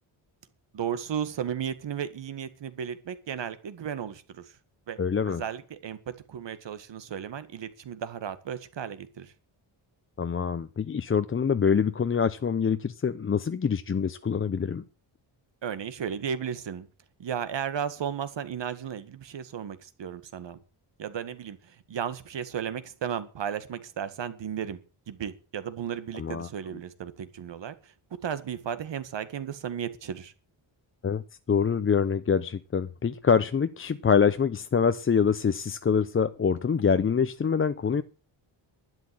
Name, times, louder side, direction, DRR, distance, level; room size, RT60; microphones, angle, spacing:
voice 1, 0.7-4.4 4.9-5.0 5.3-9.3 15.6-16.9 17.2-20.6 21.0-24.8 25.1-27.9 28.2-30.3, right 8 dB, 65° right, 1.9 m, -34 dB
voice 2, 5.0-5.4 10.2-14.8 26.1-26.5 31.0-31.2 31.5-38.0, left 6 dB, 25° left, 0.6 m, -25 dB
12.0 x 11.0 x 7.7 m
wide cardioid pair, 160°, 47 cm